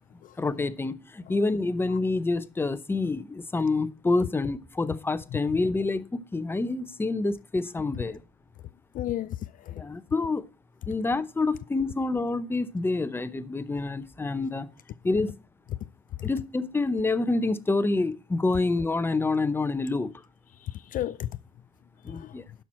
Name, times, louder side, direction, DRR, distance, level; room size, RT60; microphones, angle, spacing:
voice 1, 0.4-8.2 9.8-10.5 10.9-14.7 15.0-15.3 16.2-20.1 22.0-22.4, left 3 dB, 15° left, 0.7 m, -27 dB
voice 2, 8.9-9.8 16.2-16.3 20.6-21.3 22.1-22.3, left 13 dB, 55° left, 0.4 m, -33 dB
11.5 x 6.0 x 4.3 m
cardioid pair, 110°, 17 cm